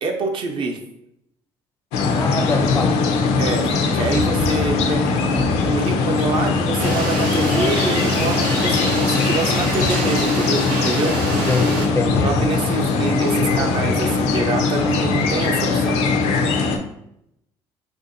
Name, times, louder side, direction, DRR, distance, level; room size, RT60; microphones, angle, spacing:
voice 1, 0.0-0.8 3.4-3.7 3.9-11.2 12.2-16.0, right 3 dB, 50° right, 4 dB, 0.6 m, -26 dB
sound 1, 1.9-16.8, left 4 dB, 80° left, 0.4 m, -20 dB
voice 2, 2.2-3.0 11.5-12.3, left 3 dB, 25° left, 7 dB, 0.4 m, -24 dB
sound 2, 6.8-11.9, right 3 dB, 90° right, 0.7 m, -26 dB
3.4 x 2.6 x 2.6 m, 0.78 s
cardioid pair, 95°, 11 cm